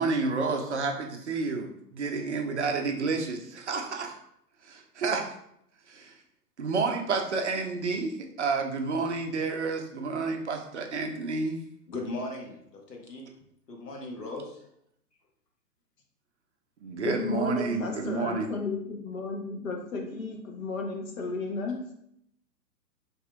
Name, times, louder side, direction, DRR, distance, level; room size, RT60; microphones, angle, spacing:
voice 1, 0.0-4.2 4.6-5.3 5.9-6.1 6.6-11.6 16.8-18.5, right 4 dB, 50° right, 3 dB, 0.5 m, -30 dB
voice 2, 11.9-13.3 13.7-14.6, left 2 dB, 80° left, 0 dB, 1.0 m, -38 dB
voice 3, 17.0-21.8, left 3 dB, 55° left, 2 dB, 0.9 m, -33 dB
4.1 x 2.6 x 2.4 m, 0.74 s
figure-of-eight pair, 120°, 48 cm